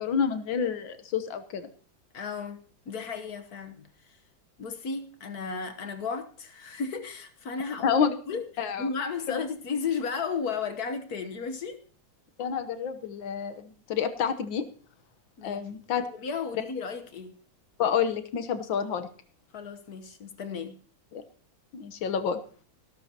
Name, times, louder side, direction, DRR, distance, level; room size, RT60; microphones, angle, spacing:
voice 1, 0.0-1.7 7.8-8.1 8.6-8.9 9.3-9.4 12.4-14.6 15.4-16.1 17.8-19.1 21.1-21.2 21.7-22.4, left 7 dB, 85° left, 10 dB, 1.8 m, -28 dB
voice 2, 2.1-4.2 4.6-8.0 8.3-8.4 8.8-11.8 15.4-15.6 16.0-17.3 19.5-20.8, left 5 dB, 55° left, 8 dB, 1.5 m, -34 dB
19.0 x 12.5 x 2.9 m, 0.44 s
omnidirectional pair, 2.0 m